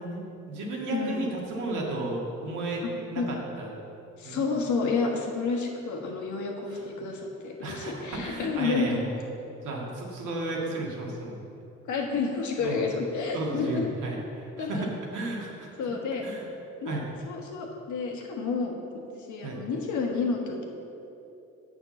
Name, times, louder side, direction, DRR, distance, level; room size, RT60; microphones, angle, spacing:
voice 1, 0.0-3.7 4.2-4.4 6.7-6.8 7.6-9.1 9.6-11.4 12.6-12.8 13.3-15.9 16.2-16.4 16.9-17.0 19.4-19.6, right 2 dB, 85° right, -2 dB, 1.9 m, -33 dB
voice 2, 0.9-1.2 3.2-3.3 4.2-9.0 11.9-13.8 14.6-14.9 15.8-16.2 16.8-17.0 17.2-20.6, left 4 dB, 75° left, 0 dB, 1.5 m, -30 dB
7.3 x 5.8 x 7.0 m, 2.8 s
cardioid pair, 90°, 30 cm